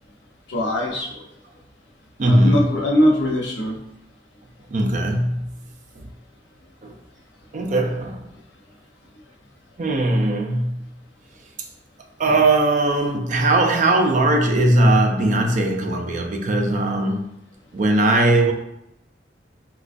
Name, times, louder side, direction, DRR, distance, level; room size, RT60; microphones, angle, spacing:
voice 1, 0.5-1.2 2.2-3.8, equal, 85° left, -1 dB, 0.7 m, -21 dB
voice 2, 2.2-2.7 4.7-5.6 6.8-6.9 7.5-8.3 9.8-10.9 12.2-17.3 17.7-18.5, right 1 dB, 45° right, 2 dB, 0.4 m, -19 dB
4.1 x 2.2 x 2.5 m, 0.83 s
head